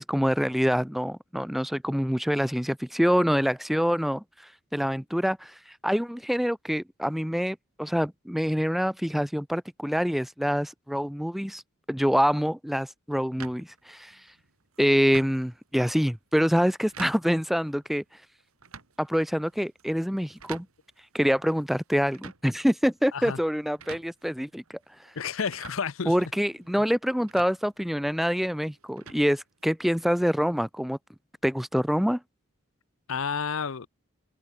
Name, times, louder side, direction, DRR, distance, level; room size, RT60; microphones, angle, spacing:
voice 1, 0.0-4.2 4.7-5.5 5.8-11.6 11.9-14.2 14.8-18.0 19.0-20.7 21.1-24.8 26.1-31.0 31.4-32.2, equal, ahead, 0.6 m, -26 dB
sound 1, 13.4-30.0, right 6 dB, 80° right, 2.4 m, -50 dB
voice 2, 25.2-26.1 33.1-33.9, left 6 dB, 70° left, 0.7 m, -30 dB
head